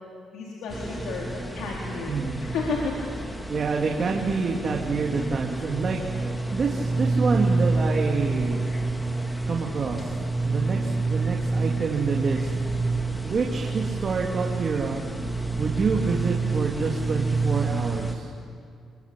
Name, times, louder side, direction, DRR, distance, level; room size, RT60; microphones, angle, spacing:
voice 1, 0.3-2.1 2.4-3.1, left 4 dB, 80° left, -3 dB, 3.9 m, -32 dB
sound 1, 0.7-18.1, right 3 dB, 10° left, 2.7 m, -28 dB
voice 2, 2.1-2.4 3.5-8.6 9.5-12.5 13.2-15.0 15.6-18.3, right 4 dB, 45° right, 0 dB, 2.7 m, -27 dB
29.0 x 23.0 x 8.5 m, 2.3 s
cardioid pair, 90°, 0 cm